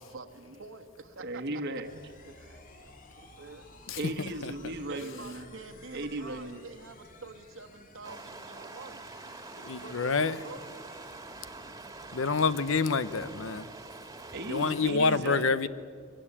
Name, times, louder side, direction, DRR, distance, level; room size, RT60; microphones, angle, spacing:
voice 1, 0.0-1.4 2.3-2.6 3.1-3.8 4.8-9.1 9.5-10.7, right 3 dB, 80° right, 6 dB, 1.4 m, -47 dB
voice 2, 1.2-2.0 4.0-5.5 5.9-6.6 14.3-15.7, right 1 dB, 60° right, 6 dB, 1.2 m, -36 dB
sound 1, 1.8-11.2, left 2 dB, 45° left, 2.0 m, -55 dB
sound 2, 8.0-14.9, right 3 dB, 15° right, 1.7 m, -45 dB
voice 3, 9.6-10.4 12.1-13.7 14.5-15.7, left 4 dB, 75° left, 15 dB, 0.8 m, -27 dB
22.5 x 16.5 x 9.9 m, 2.2 s
head